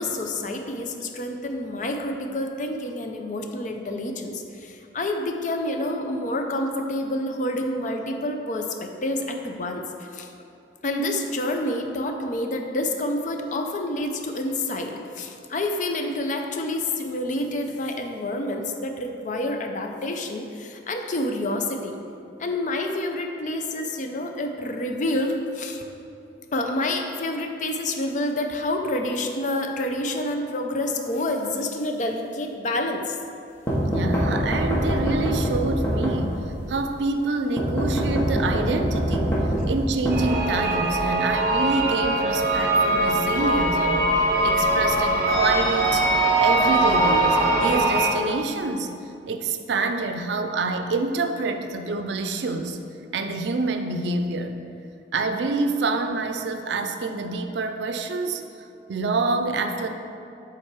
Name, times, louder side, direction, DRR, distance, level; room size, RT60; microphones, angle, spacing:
voice 1, 0.0-9.8 10.1-10.3 10.8-22.0 22.4-25.8 26.5-33.2, left 1 dB, 45° left, 4 dB, 0.5 m, -28 dB
sound 1, 33.7-36.6 37.6-40.9, equal, 15° left, 1.0 m, -25 dB
voice 2, 33.8-36.4 36.7-39.3 39.7-44.2 44.4-48.9 49.3-52.8 53.1-54.6 55.1-58.4 58.9-59.9, right 3 dB, 80° right, 7 dB, 0.5 m, -27 dB
sound 2, 40.1-48.1, right 1 dB, 55° right, 0.9 m, -21 dB
7.4 x 3.8 x 4.6 m, 2.6 s
head